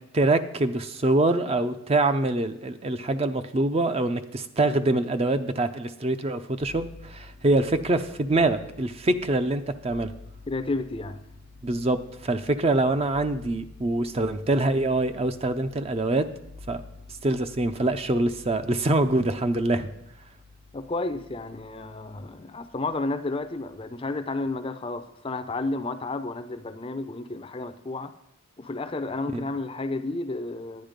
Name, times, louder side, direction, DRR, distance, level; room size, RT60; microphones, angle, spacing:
voice 1, 0.1-10.1 11.6-16.3 16.7-16.8 17.2-19.9, right 2 dB, 30° right, 0.5 m, -24 dB
sound 1, 6.6-24.0 24.3-25.1, left 3 dB, 70° right, 3.4 m, -49 dB
voice 2, 10.5-11.2 20.7-28.1 28.6-30.8, left 2 dB, 25° left, 0.5 m, -31 dB
10.5 x 9.8 x 5.1 m
head